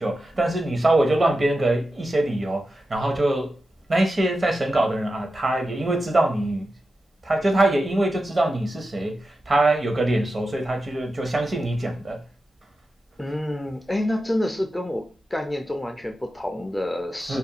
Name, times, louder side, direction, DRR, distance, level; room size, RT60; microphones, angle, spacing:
voice 1, 0.0-3.5 3.9-6.7 7.2-12.2 17.3-17.4, right 1 dB, 40° right, 0.6 m, -23 dB
voice 2, 13.2-15.0 15.3-17.4, left 1 dB, 15° left, 0.4 m, -28 dB
2.4 x 2.2 x 2.7 m
cardioid pair, 80°, 0 cm